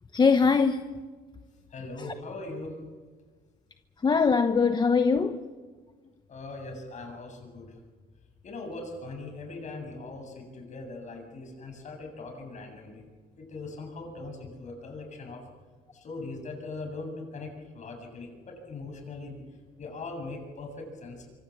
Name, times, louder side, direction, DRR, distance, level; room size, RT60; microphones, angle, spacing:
voice 1, 0.1-0.8 4.0-5.4, left 5 dB, 25° left, 1.0 m, -22 dB
voice 2, 1.7-2.8 6.3-7.7 8.4-13.1 13.4-15.4 15.9-19.4 19.8-21.3, left 3 dB, 45° left, 7.8 m, -40 dB
25.5 x 25.0 x 7.4 m
cardioid pair, 110°, 17 cm